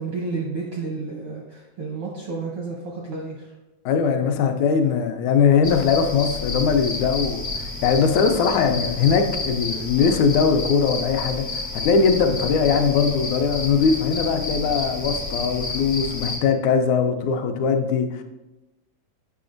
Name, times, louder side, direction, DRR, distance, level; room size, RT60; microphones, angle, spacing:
voice 1, 0.0-3.5, right 4 dB, 75° right, -2 dB, 1.2 m, -31 dB
voice 2, 3.9-18.2, left 6 dB, 80° left, 5 dB, 2.0 m, -21 dB
sound 1, 5.6-16.4, left 3 dB, 55° left, 0.9 m, -30 dB
8.4 x 5.8 x 2.5 m, 1.0 s
omnidirectional pair, 3.4 m